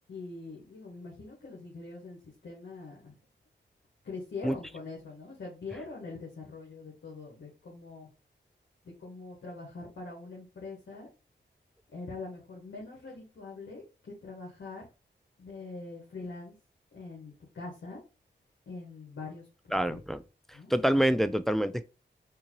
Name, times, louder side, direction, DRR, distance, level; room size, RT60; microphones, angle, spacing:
voice 1, 0.1-3.2 4.0-8.1 8.8-11.1 11.9-14.9 15.4-16.5 16.9-18.0 18.7-19.5 19.7-20.0 20.5-20.7, left 3 dB, 80° left, 1.3 m, -43 dB
voice 2, 19.7-20.2 20.7-21.8, right 1 dB, ahead, 0.4 m, -26 dB
3.6 x 2.7 x 2.9 m
cardioid pair, 40°, 19 cm